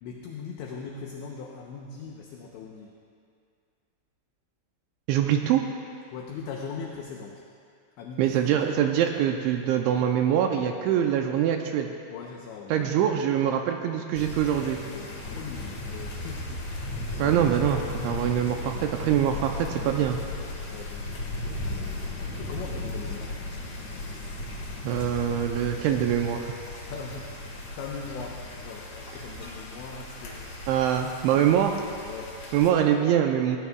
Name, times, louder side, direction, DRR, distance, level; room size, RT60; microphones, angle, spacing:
voice 1, 0.0-2.9 6.1-7.4 8.0-8.5 12.1-12.9 14.5-16.7 20.7-21.1 22.4-23.4 26.9-30.8 32.0-32.4, left 5 dB, 75° left, -1 dB, 2.9 m, -40 dB
voice 2, 5.1-5.7 8.2-11.9 12.7-14.8 17.2-20.2 24.8-26.7 30.7-31.8 32.5-33.6, right 9 dB, 85° right, 4 dB, 2.8 m, -24 dB
sound 1, 14.1-32.7, left 2 dB, 55° left, 2.2 m, -36 dB
19.5 x 18.0 x 2.3 m, 2.3 s
omnidirectional pair, 5.8 m